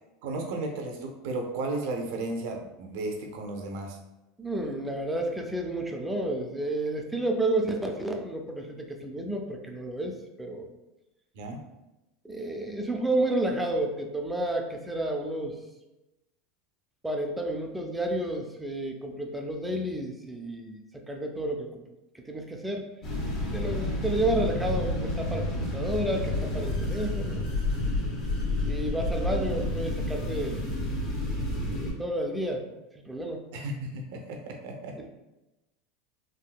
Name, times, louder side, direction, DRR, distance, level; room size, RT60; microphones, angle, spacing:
voice 1, 0.2-4.0 11.3-11.6 33.5-34.9, right 2 dB, 70° right, 2 dB, 0.6 m, -34 dB
voice 2, 4.4-10.1 10.4-10.7 12.2-15.6 17.0-21.8 22.1-22.9 23.5-27.5 28.7-30.7 31.7-32.6 33.0-33.4 35.0-35.1, right 1 dB, 5° right, 3 dB, 0.4 m, -31 dB
sound 1, 23.0-31.9, left 1 dB, 45° left, 1.1 m, -30 dB
3.5 x 2.7 x 2.3 m, 0.99 s
supercardioid pair, 130°, 0 cm